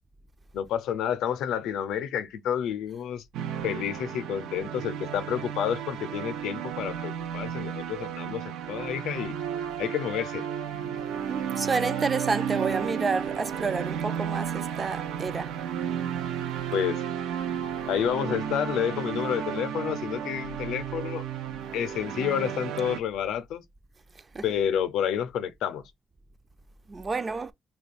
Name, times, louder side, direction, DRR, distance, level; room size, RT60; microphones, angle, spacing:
voice 1, 0.5-3.2 3.6-9.4 9.8-10.4 16.7-17.0 17.9-21.2 21.7-23.6 24.4-25.8, left 9 dB, 85° left, 0.5 m, -29 dB
sound 1, 3.3-23.0, right 8 dB, 90° right, 0.5 m, -33 dB
voice 2, 11.3-15.6 24.3-24.4 26.9-27.5, right 4 dB, 30° right, 0.4 m, -30 dB
2.9 x 2.2 x 4.1 m
cardioid pair, 90°, 0 cm